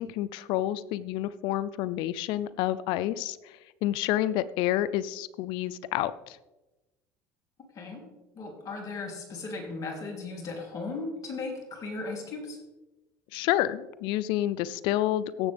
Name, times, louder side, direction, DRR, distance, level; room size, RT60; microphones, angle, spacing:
voice 1, 0.0-3.4 3.8-6.4 13.3-15.5, left 13 dB, 70° left, 17 dB, 0.5 m, -29 dB
voice 2, 8.3-12.6, left 3 dB, 40° left, 1 dB, 3.2 m, -36 dB
16.0 x 7.2 x 3.4 m, 1.1 s
supercardioid pair, 95°, 9 cm